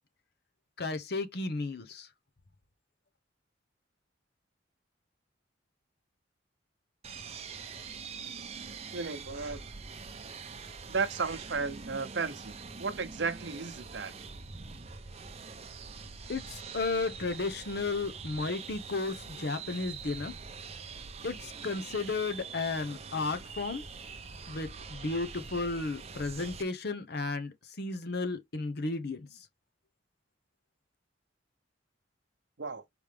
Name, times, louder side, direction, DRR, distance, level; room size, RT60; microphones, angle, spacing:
voice 1, 0.8-2.1 16.3-20.3 21.2-23.8 24.5-29.4, left 3 dB, 60° left, 0.8 m, -34 dB
sound 1, 7.0-26.6, right 5 dB, 35° right, 0.7 m, -44 dB
voice 2, 8.9-9.6 10.9-14.1 32.6-32.8, right 4 dB, 65° right, 0.9 m, -34 dB
5.0 x 3.1 x 3.4 m
head